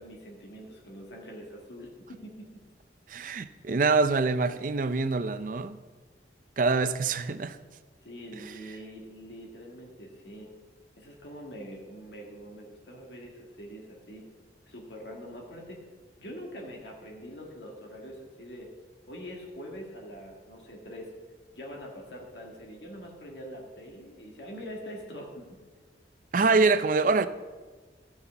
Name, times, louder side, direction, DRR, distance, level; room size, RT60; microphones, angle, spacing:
voice 1, 0.0-2.5 8.0-10.5 11.0-14.2 14.7-15.8 16.2-18.8 19.1-21.1 21.6-25.5, equal, 75° left, 1.8 m, -44 dB
voice 2, 3.1-5.8 6.6-7.6 26.3-27.3, right 4 dB, 45° right, 0.5 m, -25 dB
12.5 x 5.6 x 6.9 m
head